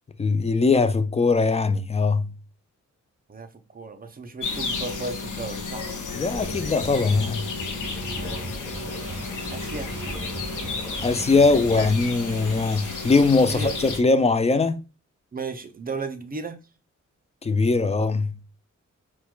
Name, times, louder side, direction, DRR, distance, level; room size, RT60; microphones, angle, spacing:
voice 1, 0.2-2.3 6.1-7.5 11.0-14.8 17.4-18.4, left 3 dB, 20° left, 0.4 m, -21 dB
voice 2, 3.3-6.0 8.2-8.5 9.5-9.9 11.8-11.9 13.5-13.7 15.3-16.6, right 3 dB, 30° right, 0.6 m, -35 dB
sound 1, 4.4-14.0, left 4 dB, 80° left, 0.7 m, -33 dB
sound 2, 6.3-11.9, right 1 dB, ahead, 1.3 m, -37 dB
sound 3, 8.7-14.0, right 5 dB, 65° right, 0.7 m, -44 dB
4.2 x 2.3 x 2.3 m
cardioid pair, 65°, 30 cm